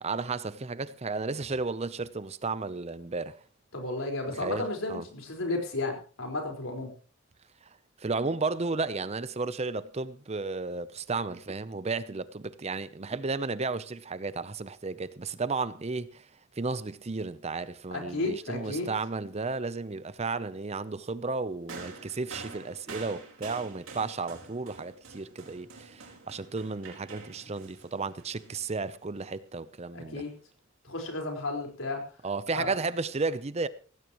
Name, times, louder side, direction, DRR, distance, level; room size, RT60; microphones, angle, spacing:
voice 1, 0.0-3.4 4.3-5.0 8.0-16.2 16.6-30.2 32.2-33.7, right 3 dB, 30° right, 0.6 m, -33 dB
voice 2, 3.7-6.9 17.9-18.9 29.9-30.3 30.8-32.0 32.5-32.7, left 2 dB, 85° left, 4.6 m, -33 dB
sound 1, 21.7-29.2 30.2-30.3, right 4 dB, 80° right, 4.5 m, -47 dB
17.5 x 16.0 x 3.0 m
head